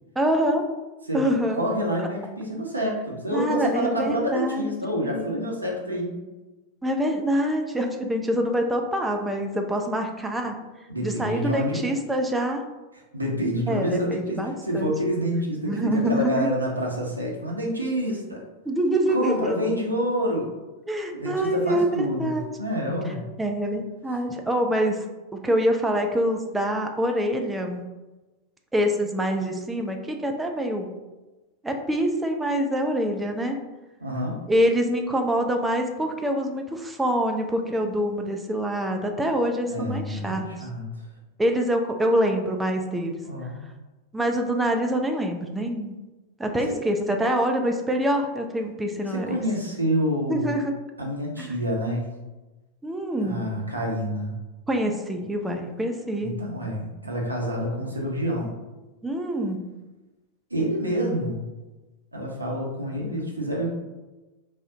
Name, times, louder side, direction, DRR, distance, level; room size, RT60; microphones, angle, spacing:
voice 1, 0.2-0.6 1.1-1.6 3.3-4.7 5.0-5.3 6.8-10.5 11.0-12.6 13.7-14.9 15.7-16.5 18.7-19.8 20.9-22.4 23.4-25.0 25.3-27.8 28.7-30.9 31.6-33.6 34.5-40.4 41.4-43.2 44.1-46.0 46.4-49.4 50.3-50.7 51.4-51.5 52.8-53.4 54.7-56.3 59.0-59.7, equal, 10° right, 3 dB, 0.3 m, -25 dB
voice 2, 1.1-6.2 10.9-11.8 13.1-18.4 19.1-20.5 21.1-23.2 34.0-34.4 39.7-40.9 43.2-43.6 46.7-46.8 49.1-50.5 51.0-52.1 53.2-54.3 56.2-58.6 60.5-61.4 62.1-63.7, equal, 85° right, -2 dB, 0.6 m, -27 dB
2.4 x 2.0 x 3.7 m, 1.1 s
figure-of-eight pair, 90°, 0 cm